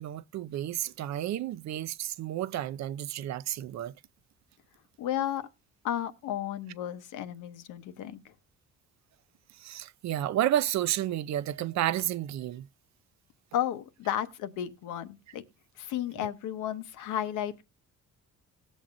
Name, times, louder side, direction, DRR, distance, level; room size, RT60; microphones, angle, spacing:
voice 1, 0.0-3.9 9.6-12.7 16.2-16.3, right 12 dB, 65° right, 0.5 m, -31 dB
voice 2, 5.0-5.5 5.8-8.3 13.5-15.4 15.8-17.6, left 11 dB, 90° left, 0.8 m, -33 dB
19.0 x 7.2 x 2.5 m
cardioid pair, 90°, 30 cm